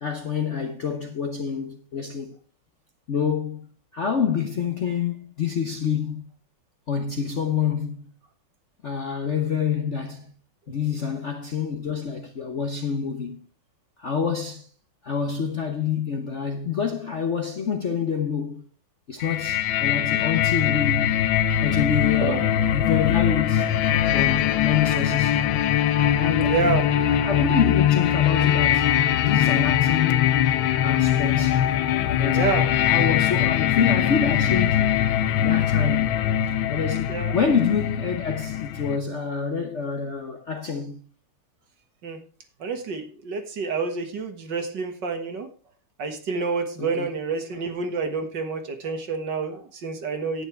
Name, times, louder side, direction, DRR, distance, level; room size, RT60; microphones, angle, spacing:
voice 1, 0.0-2.4 3.1-3.7 3.9-6.2 6.9-8.1 8.8-10.3 10.7-13.5 14.0-14.7 15.0-18.6 19.1-21.3 21.6-23.7 24.1-25.4 26.2-26.6 27.1-28.9 29.2-30.5 30.8-31.7 32.2-32.6 32.9-34.9 35.4-36.1 36.7-41.0 46.8-47.1, left 6 dB, 50° left, 0.9 m, -27 dB
sound 1, 19.2-39.0, left 10 dB, 70° left, 1.4 m, -22 dB
voice 2, 26.5-26.8 32.3-32.7 37.1-37.3 42.0-42.2 42.6-45.5 46.0-50.4, right 4 dB, 60° right, 2.1 m, -28 dB
10.5 x 9.2 x 4.4 m
omnidirectional pair, 2.3 m